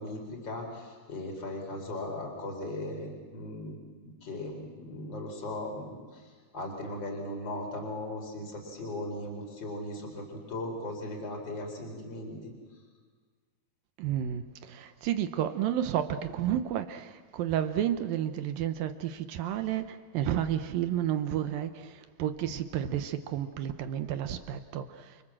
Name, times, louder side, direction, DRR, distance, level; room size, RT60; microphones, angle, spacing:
voice 1, 0.0-12.8, left 1 dB, 25° left, 2 dB, 4.7 m, -38 dB
voice 2, 14.0-25.2, right 10 dB, 70° right, 10 dB, 2.4 m, -31 dB
29.5 x 24.5 x 7.6 m, 1.5 s
omnidirectional pair, 4.7 m